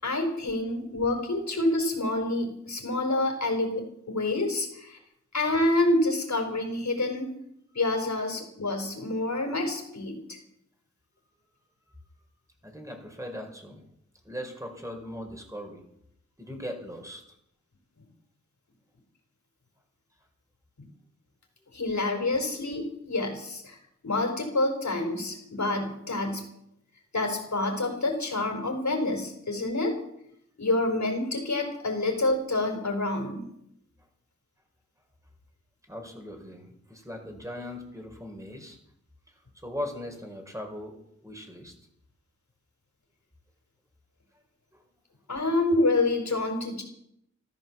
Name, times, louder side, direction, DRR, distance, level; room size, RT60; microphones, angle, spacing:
voice 1, 0.0-5.0 5.3-7.3 7.7-10.4 21.7-23.8 24.0-26.4 27.1-30.0 30.6-33.5 45.3-46.8, left 2 dB, 65° left, 3 dB, 4.5 m, -27 dB
voice 2, 12.6-13.8 14.2-15.8 16.4-17.2 35.9-38.8 39.3-41.7 44.7-44.8, left 1 dB, 10° right, 3 dB, 5.2 m, -39 dB
14.5 x 13.5 x 7.4 m, 0.75 s
cardioid pair, 55°, 30 cm